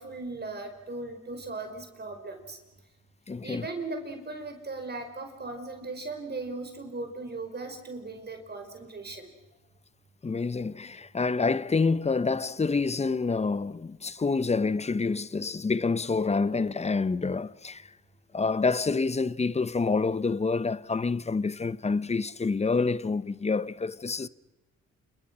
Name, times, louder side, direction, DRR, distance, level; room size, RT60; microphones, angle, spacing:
voice 1, 0.0-2.6 3.4-9.3, right 3 dB, 35° right, 5.2 m, -38 dB
voice 2, 3.3-3.7 10.2-17.8 18.3-24.3, left 4 dB, 20° left, 0.9 m, -27 dB
29.0 x 28.5 x 6.2 m
cardioid pair, 90°, 30 cm